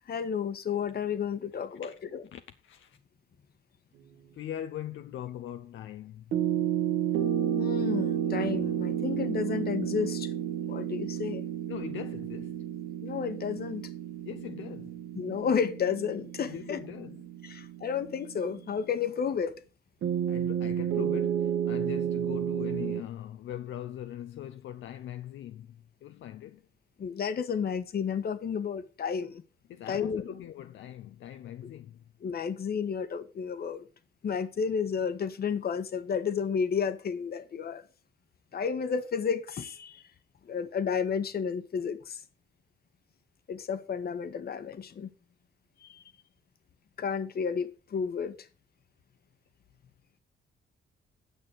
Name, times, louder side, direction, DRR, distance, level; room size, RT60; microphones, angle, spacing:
voice 1, 0.1-2.2 7.6-10.3 10.7-11.5 13.0-13.8 15.1-16.8 17.4-19.5 27.0-29.4 29.9-30.2 32.2-33.8 34.2-37.8 38.5-40.0 40.4-42.2 43.5-45.1 45.8-46.0 47.0-48.3, left 6 dB, 50° left, 1.4 m, -31 dB
voice 2, 2.3-3.0 4.3-6.3 11.7-12.6 14.2-15.0 16.5-17.2 20.3-26.6 29.7-32.0, left 11 dB, 75° left, 0.7 m, -41 dB
sound 1, 6.3-18.7 20.0-23.0, right 10 dB, 75° right, 1.4 m, -31 dB
9.3 x 6.3 x 6.1 m
cardioid pair, 90°, 20 cm